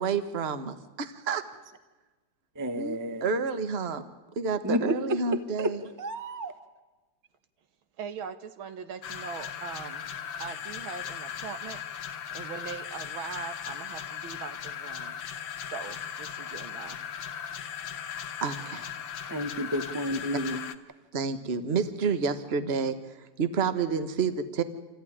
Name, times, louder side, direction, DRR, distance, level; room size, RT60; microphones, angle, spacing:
voice 1, 0.0-1.4 2.8-4.0 4.4-5.8 18.4-18.9 21.1-23.0 23.4-24.6, right 5 dB, 35° right, 11 dB, 1.2 m, -29 dB
voice 2, 2.6-3.4 4.6-5.2 5.6-5.7 6.0-6.5 19.3-20.6, equal, 15° right, 10 dB, 0.8 m, -30 dB
voice 3, 8.0-10.1 10.4-11.8 12.3-15.2 15.7-17.0, right 6 dB, 75° right, 10 dB, 2.0 m, -41 dB
sound 1, 9.0-20.7, left 8 dB, 70° left, 1.7 m, -38 dB
26.5 x 15.0 x 10.0 m, 1.2 s
omnidirectional pair, 2.3 m